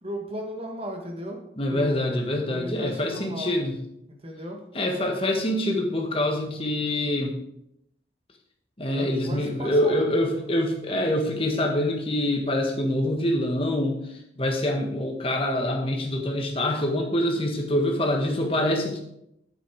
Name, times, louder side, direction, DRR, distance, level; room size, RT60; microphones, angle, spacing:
voice 1, 0.0-1.4 1.7-2.2 2.5-3.5 4.1-4.6 8.9-10.6, equal, 30° right, 2 dB, 1.7 m, -36 dB
voice 2, 1.6-3.8 4.7-7.4 8.8-14.0 14.4-19.0, left 1 dB, 30° left, 1 dB, 1.6 m, -25 dB
8.4 x 8.2 x 4.8 m, 0.80 s
head